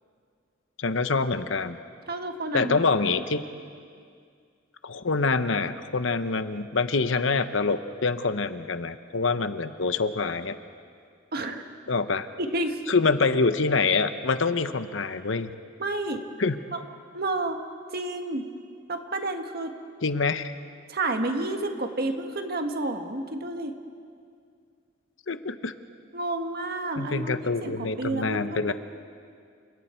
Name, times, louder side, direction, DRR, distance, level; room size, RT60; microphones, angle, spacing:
voice 1, 0.8-1.8 2.5-3.4 4.8-10.5 11.9-12.3 12.9-15.5 16.4-16.6 20.0-20.5 25.3-25.7 27.0-28.7, left 4 dB, 75° left, 11 dB, 0.9 m, -25 dB
voice 2, 2.1-2.8 11.3-11.6 12.4-12.8 15.8-16.2 16.7-16.8 17.1-17.6 17.9-18.5 18.9-19.7 20.9-23.7 26.1-28.7, right 2 dB, 55° right, 5 dB, 1.6 m, -30 dB
29.0 x 27.0 x 4.5 m, 2.2 s
head